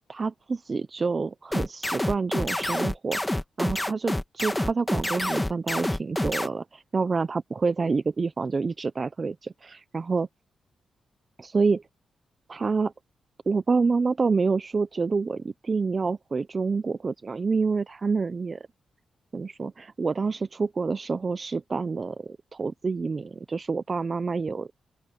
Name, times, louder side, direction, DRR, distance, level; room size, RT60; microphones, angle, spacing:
voice 1, 0.1-10.3 11.4-11.8 12.5-12.9 13.5-18.6 19.3-24.7, right 4 dB, 35° right, 0.7 m, -27 dB
sound 1, 1.5-6.5, left 1 dB, 10° left, 1.6 m, -27 dB
open air
cardioid pair, 95°, 0 cm